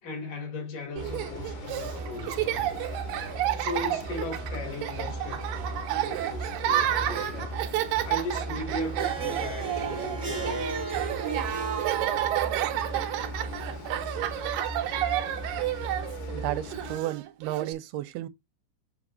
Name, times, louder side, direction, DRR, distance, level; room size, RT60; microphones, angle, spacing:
voice 1, 0.0-2.8 3.6-5.7 6.0-7.6 8.0-11.0, left 2 dB, 60° left, 3.4 m, -37 dB
sound 1, 1.0-17.0, equal, 85° left, 3.9 m, -38 dB
Laughter, 1.0-17.7, right 12 dB, 75° right, 2.3 m, -31 dB
Harp, 8.8-14.3, right 3 dB, 45° right, 1.0 m, -38 dB
voice 2, 16.3-18.3, right 14 dB, 90° right, 2.5 m, -33 dB
7.1 x 6.0 x 2.4 m
omnidirectional pair, 4.4 m